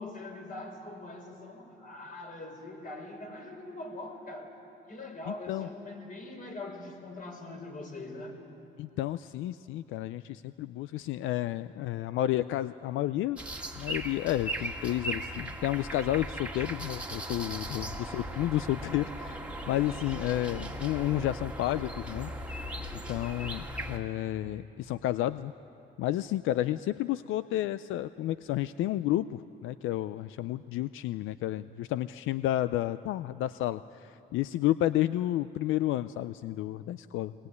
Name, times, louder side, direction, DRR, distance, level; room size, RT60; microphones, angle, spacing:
voice 1, 0.0-4.5 4.9-8.4 17.7-17.8, left 2 dB, 45° left, 2 dB, 5.2 m, -42 dB
voice 2, 5.3-5.7 8.8-13.4 13.8-22.3 22.9-25.5 26.0-37.3, left 14 dB, 85° left, 14 dB, 0.5 m, -31 dB
sound 1, 13.4-24.0, right 1 dB, 5° right, 2.1 m, -38 dB
22.5 x 19.5 x 9.5 m, 2.9 s
cardioid pair, 90°, 20 cm